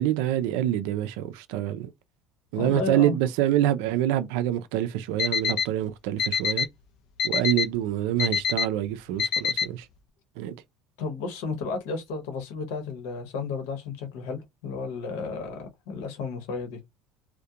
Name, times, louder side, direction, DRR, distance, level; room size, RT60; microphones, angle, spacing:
voice 1, 0.0-1.9 2.5-6.7 7.2-9.8 10.4-10.5, right 12 dB, 80° right, 0.4 m, -26 dB
voice 2, 2.5-3.2 11.0-16.8, left 4 dB, 80° left, 0.9 m, -33 dB
Alarm, 5.2-5.6 6.2-6.6 7.2-7.6 8.2-8.6 9.2-9.6, left 7 dB, 65° left, 0.5 m, -24 dB
2.3 x 2.1 x 2.7 m
supercardioid pair, 100°, 0 cm